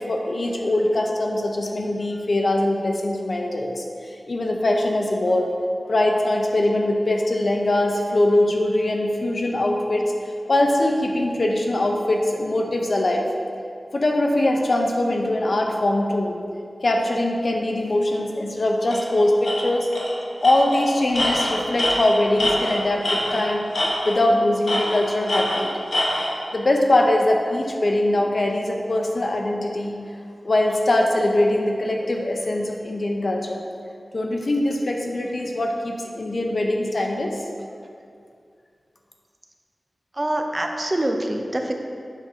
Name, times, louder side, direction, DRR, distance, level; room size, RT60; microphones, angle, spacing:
voice 1, 0.0-5.5 5.9-10.1 10.5-13.2 13.9-16.4 16.8-19.9 20.4-23.7 24.0-25.7 26.5-30.0 30.4-33.6 34.1-37.4, left 1 dB, 60° left, 1 dB, 0.6 m, -22 dB
Tools, 18.9-19.0 19.4-19.6 19.9-20.1 20.4-23.5 23.7-24.3 24.7-26.3, left 1 dB, 80° left, 1.1 m, -24 dB
voice 2, 40.2-41.8, right 1 dB, 30° right, 3 dB, 0.5 m, -25 dB
7.1 x 5.7 x 2.8 m, 2.3 s
wide cardioid pair, 65°, 0 cm